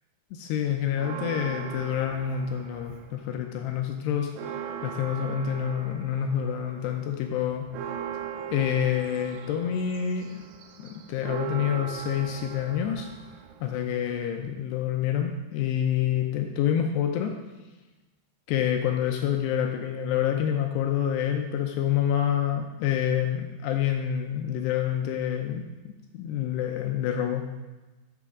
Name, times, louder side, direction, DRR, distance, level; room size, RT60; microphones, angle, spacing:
voice 1, 0.3-7.7 8.5-10.4 10.8-13.1 13.6-17.3 18.5-27.5, left 9 dB, 85° left, 4 dB, 2.5 m, -27 dB
Church bell, 0.9-3.3 3.7-3.8 4.1-14.2, right 8 dB, 85° right, 2.9 m, -39 dB
12.5 x 6.8 x 3.7 m, 1.1 s
omnidirectional pair, 5.4 m